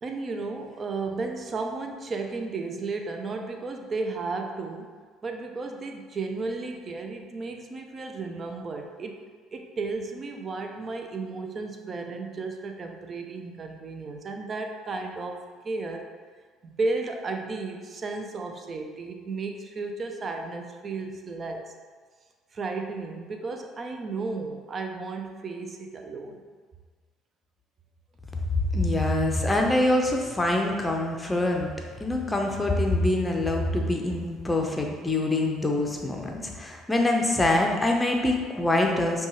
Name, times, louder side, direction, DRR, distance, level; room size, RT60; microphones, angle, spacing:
voice 1, 0.0-4.9 5.2-9.2 9.5-16.1 16.6-21.7 22.5-26.4, right 3 dB, 40° right, 3 dB, 0.5 m, -34 dB
voice 2, 28.7-31.7 32.0-39.3, left 1 dB, 15° left, 1 dB, 0.7 m, -25 dB
5.3 x 2.3 x 3.0 m, 1.5 s
supercardioid pair, 80°, 0 cm